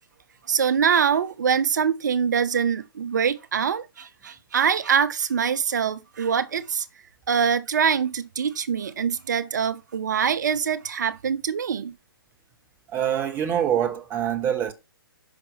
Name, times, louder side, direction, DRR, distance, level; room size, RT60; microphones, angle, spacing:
voice 1, 0.5-6.9 7.3-11.9, right 7 dB, 50° right, 0.6 m, -24 dB
voice 2, 12.9-14.7, right 9 dB, 15° right, 0.8 m, -24 dB
5.6 x 5.0 x 3.3 m
figure-of-eight pair, 125°, 12 cm